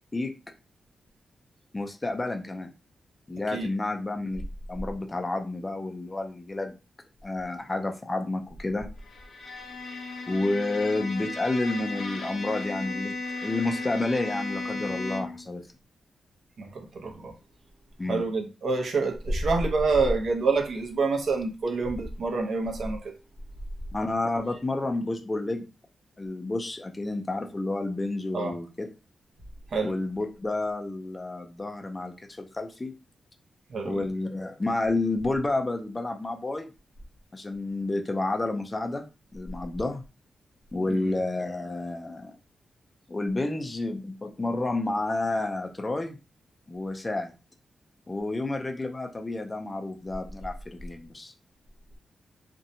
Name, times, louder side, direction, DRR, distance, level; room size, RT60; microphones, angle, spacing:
voice 1, 1.7-2.7 3.3-4.4 4.7-6.7 7.2-8.9 10.3-13.1 13.4-15.6 18.0-18.2 23.9-25.7 26.2-28.9 29.8-32.9 33.8-36.7 37.3-39.0 39.3-40.0 40.7-42.3 43.1-46.2 46.7-47.3 48.1-51.3, left 2 dB, 20° left, 0.3 m, -30 dB
Bowed string instrument, 9.0-15.5, left 3 dB, 75° left, 0.6 m, -35 dB
voice 2, 16.6-17.3 18.1-23.1 28.3-28.5 29.7-29.9 33.7-34.1 40.9-41.0, right 3 dB, 55° right, 0.6 m, -27 dB
2.6 x 2.1 x 2.7 m
wide cardioid pair, 140°, 0 cm